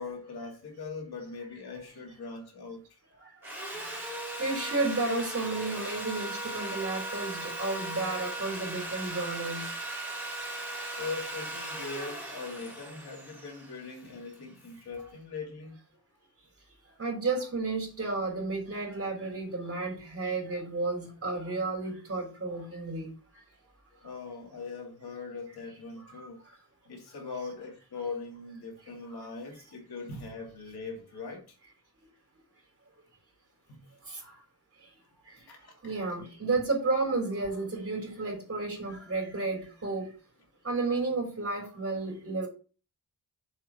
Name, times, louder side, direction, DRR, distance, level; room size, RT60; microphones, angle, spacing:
voice 1, 0.0-3.0 10.9-15.8 17.1-17.2 24.0-26.4 26.9-31.6 33.7-33.8 35.5-35.9, left 4 dB, 90° left, 2.7 m, -41 dB
Sawing, 3.4-14.5, right 1 dB, 5° right, 3.8 m, -38 dB
voice 2, 4.4-9.7 17.0-23.1 35.8-40.1 40.6-42.5, right 3 dB, 40° right, 3.8 m, -32 dB
7.1 x 4.8 x 5.7 m
wide cardioid pair, 110°, 37 cm